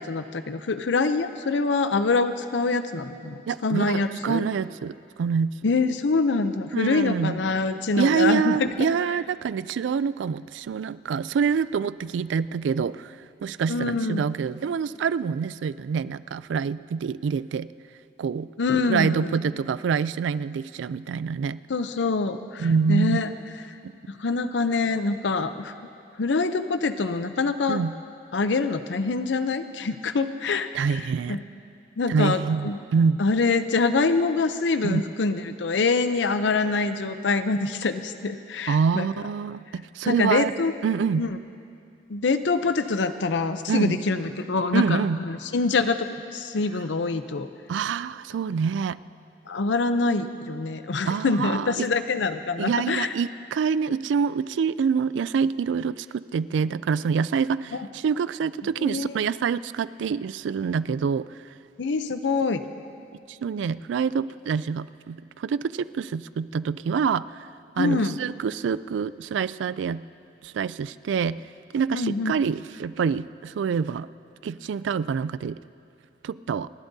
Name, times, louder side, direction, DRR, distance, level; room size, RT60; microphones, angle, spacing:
voice 1, 0.0-4.4 5.6-8.6 13.7-14.2 18.6-19.3 21.7-23.3 24.1-25.7 26.2-27.8 28.3-31.0 31.3-31.4 32.0-32.8 33.2-39.0 40.1-40.7 41.2-41.3 42.1-46.1 46.3-47.5 49.5-53.1 57.7-57.9 58.8-59.1 61.8-62.6 67.8-68.2 71.9-72.4, left 3 dB, 80° left, 10 dB, 0.6 m, -25 dB
voice 2, 3.5-5.5 6.7-7.4 8.0-13.2 13.4-17.7 18.2-18.5 18.9-21.6 22.6-23.2 23.8-23.9 27.7-27.9 30.7-31.4 32.1-33.2 34.8-35.0 38.7-40.5 40.8-41.2 43.7-44.0 44.7-45.2 47.7-49.0 51.0-51.9 52.6-61.3 63.3-67.5 67.8-70.0 70.4-71.4 71.7-74.1 74.4-75.6 76.2-76.7, right 6 dB, 90° right, 17 dB, 0.3 m, -26 dB
29.0 x 11.5 x 2.7 m, 2.5 s
head